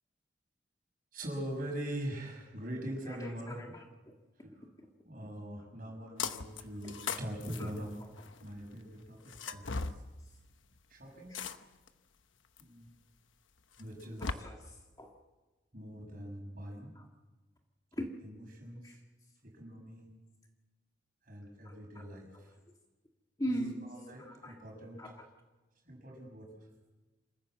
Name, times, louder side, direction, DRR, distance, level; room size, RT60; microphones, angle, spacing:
voice 1, 1.1-3.8 4.4-4.7 5.0-7.9 8.4-10.0 10.9-11.3 12.6-12.9 13.8-14.4 15.7-16.9 18.2-19.0 19.4-20.2 21.2-22.5 23.4-25.1 25.8-26.5, right 1 dB, 45° right, 1 dB, 6.5 m, -43 dB
voice 2, 3.0-4.1 6.8-6.9 7.6-7.7 11.3-11.4 14.2-15.1 17.0-17.1 17.9-18.1 18.8-19.0 21.6-22.0 22.3-22.4 23.4-23.9 24.2-24.6 25.0-25.1, equal, 20° left, 1 dB, 1.8 m, -40 dB
sound 1, 6.2-6.6 6.9-8.4 9.3-10.0 11.3-11.9 12.6-12.7 13.8-14.3, left 5 dB, 85° left, 1.0 m, -37 dB
27.0 x 14.5 x 7.7 m, 1.2 s
head